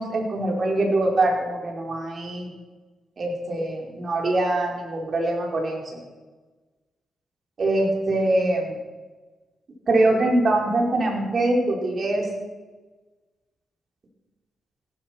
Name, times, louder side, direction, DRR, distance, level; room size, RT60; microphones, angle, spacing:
voice 1, 0.0-2.5 3.2-6.0 7.6-8.8 9.9-12.2, right 2 dB, 50° right, 0 dB, 4.8 m, -23 dB
16.5 x 14.0 x 6.1 m, 1.3 s
cardioid pair, 85°, 0 cm